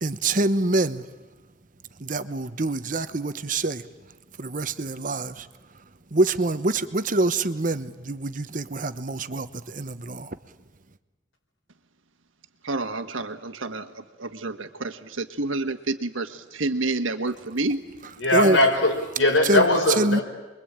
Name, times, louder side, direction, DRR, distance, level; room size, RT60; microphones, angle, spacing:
voice 1, 0.0-1.0 2.0-3.8 4.4-5.5 6.1-10.4 18.3-18.6 19.4-19.6 20.0-20.2, right 2 dB, 40° right, 12 dB, 1.0 m, -25 dB
voice 2, 12.6-17.8, right 2 dB, 85° right, 9 dB, 1.5 m, -29 dB
voice 3, 18.2-20.2, left 1 dB, 80° left, 2 dB, 4.9 m, -20 dB
28.5 x 22.5 x 8.8 m, 1.1 s
head